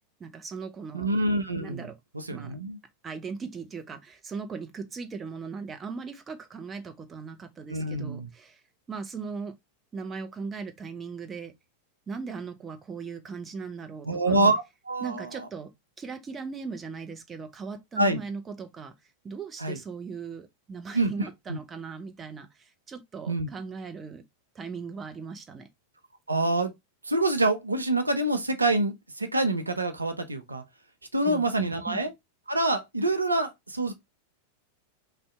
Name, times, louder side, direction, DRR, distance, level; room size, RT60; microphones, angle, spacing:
voice 1, 0.2-1.1 1.6-1.9 2.3-2.6 3.0-8.6 8.9-9.6 9.9-11.5 12.1-14.4 15.0-15.7 16.0-18.9 19.2-24.2 24.5-25.7 31.2-32.0, right 5 dB, 20° right, 0.6 m, -38 dB
voice 2, 0.9-1.9 2.1-2.8 7.7-8.3 14.1-15.5 18.0-18.2 19.6-19.8 20.9-21.6 23.3-23.5 26.3-26.7 27.0-30.6 31.1-32.1 32.5-33.9, right 2 dB, 80° right, 0.4 m, -26 dB
2.6 x 2.1 x 3.5 m
figure-of-eight pair, 90°, 0 cm